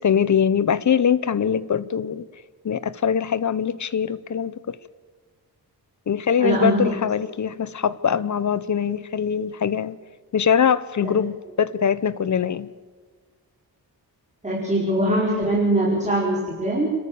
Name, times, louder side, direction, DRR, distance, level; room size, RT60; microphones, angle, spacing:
voice 1, 0.0-2.3 2.6-4.8 6.1-10.0 10.3-12.7, left 7 dB, 45° left, 17 dB, 0.9 m, -22 dB
voice 2, 6.4-6.9 11.0-11.1 14.4-16.9, right 1 dB, 15° right, -5 dB, 4.9 m, -22 dB
29.5 x 13.5 x 7.0 m, 1.5 s
wide cardioid pair, 110°, 40 cm